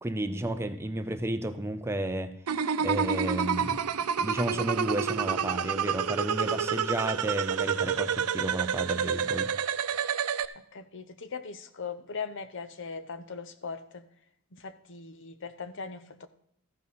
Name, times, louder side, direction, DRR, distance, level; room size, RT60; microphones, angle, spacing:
voice 1, 0.0-2.4 2.8-3.8 4.2-9.5, right 1 dB, 10° right, 0.6 m, -32 dB
sound 1, 2.5-10.5, right 7 dB, 90° right, 0.6 m, -29 dB
voice 2, 10.7-14.0 14.5-16.3, left 5 dB, 55° left, 0.8 m, -39 dB
14.0 x 5.9 x 6.3 m
head